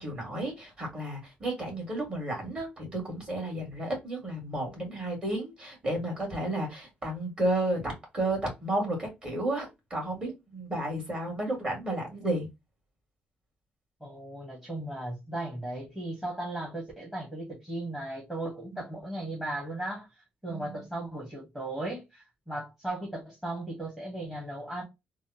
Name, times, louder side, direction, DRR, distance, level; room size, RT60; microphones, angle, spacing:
voice 1, 0.0-12.5 18.7-18.8 20.5-20.8, right 1 dB, 30° right, 2.0 m, -32 dB
voice 2, 14.0-20.1 20.4-24.8, right 1 dB, 10° right, 1.1 m, -36 dB
3.6 x 2.1 x 2.8 m
cardioid pair, 150°, 3 cm